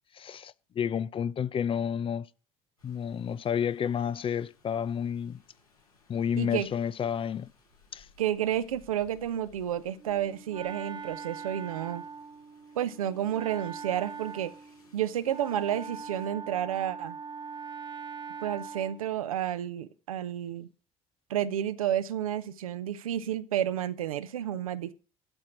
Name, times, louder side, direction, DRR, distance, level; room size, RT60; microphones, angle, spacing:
voice 1, 0.1-2.3 2.8-5.4 6.1-7.5 7.9-8.1, left 8 dB, 30° left, 0.5 m, -30 dB
Rain, 2.8-16.3, left 3 dB, 85° left, 6.1 m, -63 dB
voice 2, 6.4-6.7 8.2-12.0 12.8-14.5 14.9-17.2 18.4-20.7 21.3-24.9, right 11 dB, 75° right, 0.8 m, -31 dB
Wind instrument woodwind instrument, 10.0-19.1, right 6 dB, 25° right, 0.7 m, -42 dB
12.5 x 4.4 x 8.4 m
figure-of-eight pair, 60°, 18 cm